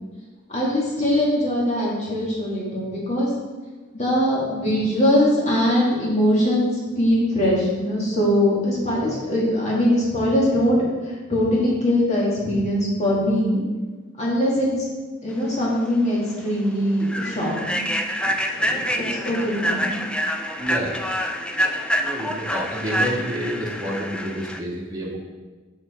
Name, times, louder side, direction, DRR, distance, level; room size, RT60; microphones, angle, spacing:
voice 1, 0.5-3.3 3.9-6.7 6.9-10.9 11.3-13.6 14.2-14.7 15.2-17.9 18.6-20.0, equal, 35° left, -5 dB, 2.2 m, -21 dB
Human voice / Train, 15.7-15.9 16.3-16.5 17.0-24.6, equal, 5° left, 0.3 m, -26 dB
voice 2, 20.6-21.0 21.5-25.2, equal, 20° right, -4 dB, 1.6 m, -29 dB
6.6 x 6.1 x 4.4 m, 1.3 s
head